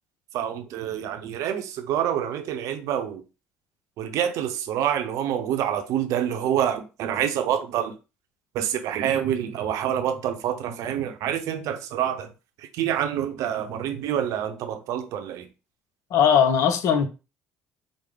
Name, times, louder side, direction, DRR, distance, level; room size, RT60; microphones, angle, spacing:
voice 1, 0.3-3.2 4.0-7.9 8.5-12.3 12.7-15.5, right 10 dB, 65° right, 0.7 m, -27 dB
voice 2, 16.1-17.1, left 7 dB, 65° left, 0.6 m, -19 dB
4.8 x 2.1 x 3.7 m
hypercardioid pair, 60°, 6 cm